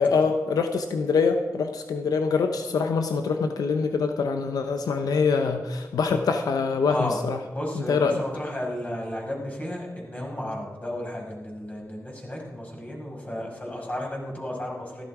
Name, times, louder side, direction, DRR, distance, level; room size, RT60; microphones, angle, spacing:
voice 1, 0.0-7.4 7.9-8.2, left 5 dB, 90° left, 6 dB, 0.8 m, -24 dB
voice 2, 6.8-7.2 7.5-15.0, left 1 dB, 25° left, -2 dB, 5.9 m, -33 dB
15.0 x 12.5 x 4.9 m, 1.2 s
cardioid pair, 50°, 6 cm